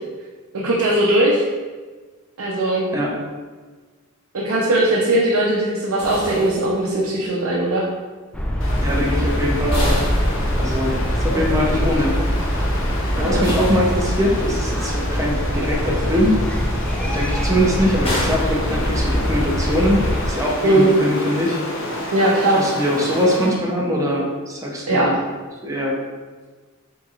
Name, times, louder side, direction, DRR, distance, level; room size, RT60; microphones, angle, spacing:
voice 1, 0.5-1.4 2.4-2.9 4.3-7.8 11.2-11.4 13.2-13.5 20.6-20.9 22.1-22.6 24.9-25.1, right 1 dB, 75° right, -5 dB, 0.7 m, -19 dB
sound 1, 6.0-7.3 9.7-11.1 13.4-14.6 18.0-19.4, equal, 25° left, 1.1 m, -31 dB
sound 2, 8.3-20.3, equal, 5° left, 0.3 m, -23 dB
Stream, 8.6-23.7, left 1 dB, 65° left, 0.9 m, -30 dB
voice 2, 8.8-10.0 10.6-11.0 11.2-12.1 13.2-16.3 17.0-21.6 22.6-25.1 25.6-26.0, equal, 15° right, -3 dB, 0.7 m, -22 dB
4.5 x 3.8 x 2.4 m, 1.4 s
head